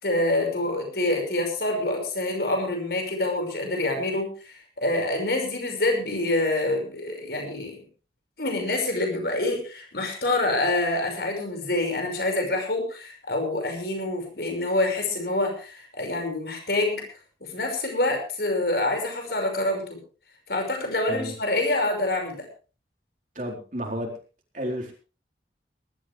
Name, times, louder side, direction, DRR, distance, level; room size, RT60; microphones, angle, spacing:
voice 1, 0.0-7.8 8.4-17.0 17.5-20.0 20.5-22.5, left 2 dB, 65° left, 3 dB, 5.7 m, -26 dB
voice 2, 23.3-24.1 24.5-24.9, equal, 45° right, 1 dB, 4.1 m, -31 dB
20.0 x 13.0 x 3.5 m, 0.35 s
head